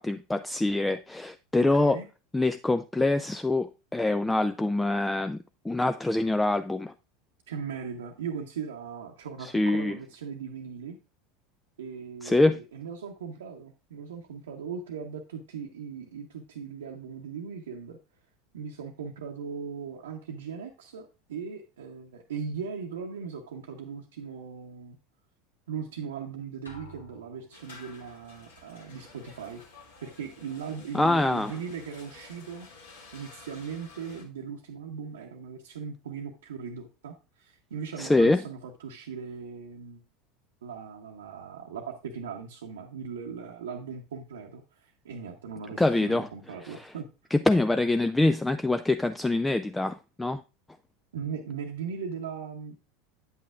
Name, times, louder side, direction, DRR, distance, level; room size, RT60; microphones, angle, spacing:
voice 1, 0.0-2.0 2.3-5.4 5.6-6.9 9.4-10.0 12.2-12.6 30.9-31.6 38.0-38.4 45.8-46.3 46.6-46.9 47.3-50.4, left 2 dB, 10° left, 0.3 m, -25 dB
voice 2, 1.6-2.1 7.5-11.0 11.8-18.0 18.5-25.0 25.7-29.6 30.0-32.7 33.1-40.0 40.6-47.1 51.1-52.7, right 6 dB, 70° right, 0.8 m, -39 dB
sound 1, 26.7-28.1, right 1 dB, 85° left, 1.4 m, -51 dB
sound 2, 27.5-34.2, left 3 dB, 65° left, 1.5 m, -51 dB
9.2 x 8.2 x 2.4 m
figure-of-eight pair, 75°, 0 cm